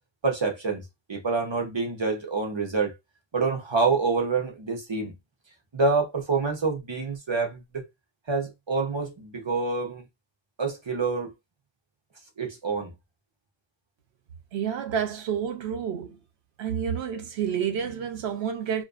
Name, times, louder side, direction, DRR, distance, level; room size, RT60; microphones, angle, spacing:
voice 1, 0.2-0.8 1.1-2.9 3.3-5.1 5.7-7.9 8.3-10.0 10.6-11.3 12.4-12.9, right 4 dB, 35° right, 0.4 m, -27 dB
voice 2, 14.5-16.2 16.6-18.8, right 8 dB, 65° right, 0.8 m, -29 dB
2.5 x 2.3 x 2.3 m
omnidirectional pair, 1.3 m